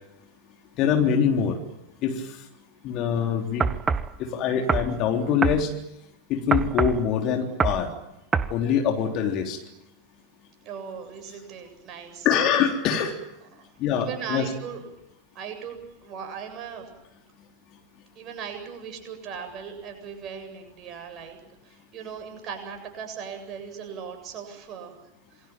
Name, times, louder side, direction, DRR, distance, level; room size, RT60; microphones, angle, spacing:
voice 1, 0.8-1.6 2.0-2.4 2.8-3.7 4.2-5.7 6.3-7.9 8.5-9.6 12.2-13.2 13.8-14.5, left 7 dB, 40° left, 3 dB, 3.5 m, -24 dB
sound 1, 3.6-4.1 4.7-4.9 5.4-5.6 6.5-7.0 7.6-7.8 8.3-8.5, right 5 dB, 15° right, 1.1 m, -24 dB
voice 2, 10.6-12.3 13.5-13.7 13.9-14.8 15.3-16.9 18.1-21.4 21.6-25.5, right 7 dB, 35° right, 4 dB, 7.9 m, -38 dB
27.5 x 22.0 x 8.9 m, 0.87 s
figure-of-eight pair, 90°, 0 cm